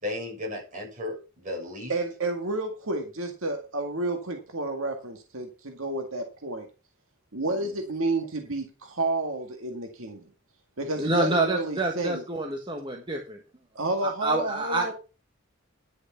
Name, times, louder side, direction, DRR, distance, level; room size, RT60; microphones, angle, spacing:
voice 1, 0.0-1.9 7.4-7.7, left 2 dB, 40° right, -2 dB, 6.9 m, -35 dB
voice 2, 1.9-6.7 7.3-10.3 10.8-12.2 13.8-14.9, right 2 dB, 80° right, 4 dB, 2.0 m, -30 dB
voice 3, 11.0-13.4 14.0-14.9, right 2 dB, 25° right, 2 dB, 1.3 m, -27 dB
11.5 x 6.8 x 5.7 m, 0.32 s
head